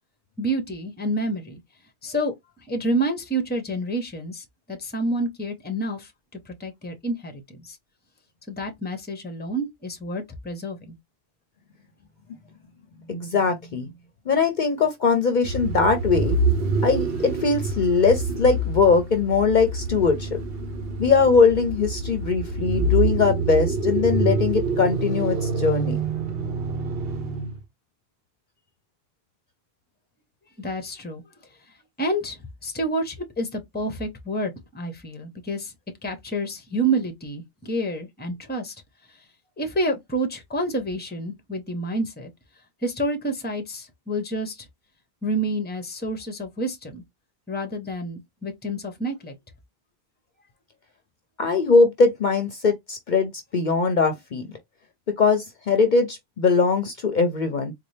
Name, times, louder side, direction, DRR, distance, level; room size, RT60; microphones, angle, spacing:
voice 1, 0.4-1.6 2.0-2.3 2.7-6.1 6.5-7.8 8.5-10.9 30.6-31.2 32.0-35.7 36.0-38.8 39.1-39.2 39.6-42.3 42.8-44.7 45.2-47.0 47.5-49.3, right 1 dB, 10° left, 0.7 m, -28 dB
voice 2, 13.1-13.9 14.3-16.4 16.8-20.4 21.0-26.0 51.4-54.4 55.2-57.7, left 4 dB, 55° left, 0.7 m, -21 dB
sound 1, 15.4-27.6, right 3 dB, 70° right, 1.0 m, -26 dB
4.1 x 2.2 x 3.2 m
omnidirectional pair, 1.1 m